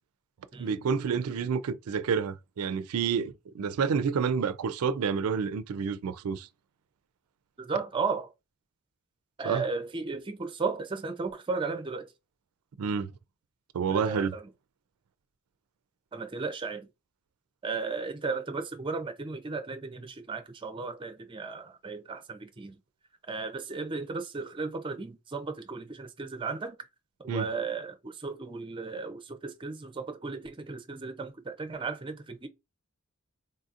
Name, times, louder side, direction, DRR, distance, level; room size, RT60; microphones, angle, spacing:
voice 1, 0.6-6.5 9.5-9.6 12.8-13.1 13.7-14.3 27.3-27.5, right 6 dB, 75° right, 0.4 m, -29 dB
voice 2, 7.6-8.3 9.4-12.1 13.9-14.5 16.1-16.9 17.6-22.8 23.3-26.8 27.2-32.5, right 4 dB, 25° right, 0.5 m, -35 dB
3.9 x 2.7 x 2.4 m
head